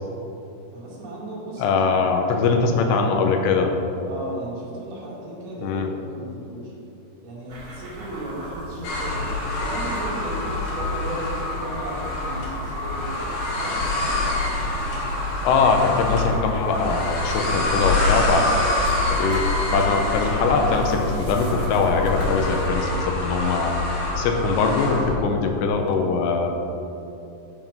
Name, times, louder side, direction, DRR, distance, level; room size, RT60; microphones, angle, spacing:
voice 1, 0.7-1.8 2.1-3.0 4.1-6.7 7.2-9.3 9.6-13.8 24.1-24.5, right 1 dB, 65° right, -5 dB, 4.1 m, -35 dB
voice 2, 1.6-3.7 5.6-5.9 15.4-18.5 19.1-19.4 19.7-23.7 24.2-26.5, left 4 dB, 85° left, 4 dB, 3.0 m, -22 dB
sound 1, 7.5-22.7, right 1 dB, 40° right, 2.2 m, -37 dB
sound 2, 8.8-25.2, left 2 dB, 60° left, 2.9 m, -26 dB
12.0 x 6.0 x 5.8 m, 2.9 s
omnidirectional pair, 5.1 m